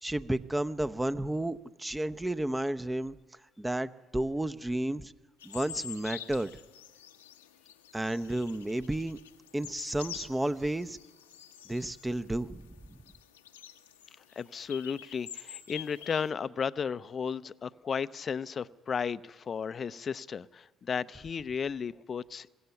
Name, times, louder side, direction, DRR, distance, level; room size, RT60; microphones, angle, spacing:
voice 1, 0.0-3.2 3.6-5.1 5.4-6.5 7.9-9.2 9.5-11.0 11.7-13.0, right 1 dB, 10° right, 12 dB, 0.8 m, -32 dB
sound 1, 5.4-12.3 12.6-12.7 12.9-16.3, left 9 dB, 85° left, 1.0 m, -46 dB
voice 2, 14.4-22.5, left 6 dB, 40° left, 16 dB, 0.6 m, -34 dB
23.5 x 16.0 x 7.1 m, 1.3 s
hypercardioid pair, 55°, 0 cm